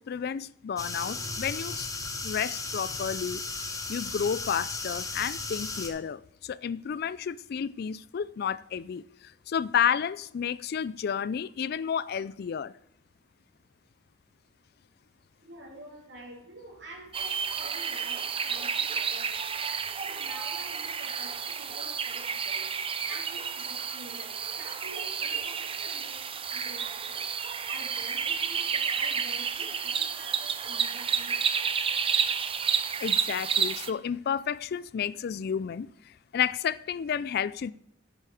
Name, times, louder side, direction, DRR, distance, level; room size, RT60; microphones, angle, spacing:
voice 1, 0.0-1.9 2.2-3.4 3.9-9.0 9.5-12.7 33.0-35.9 36.3-37.7, left 8 dB, 55° left, 0.4 m, -31 dB
sound 1, 0.8-5.9, left 3 dB, 20° left, 1.3 m, -35 dB
voice 2, 15.4-19.6 20.0-22.7 23.1-27.3 27.7-31.8, right 1 dB, 65° right, 3.2 m, -48 dB
sound 2, 17.1-33.9, right 6 dB, 30° right, 0.7 m, -31 dB
11.0 x 8.2 x 4.9 m
head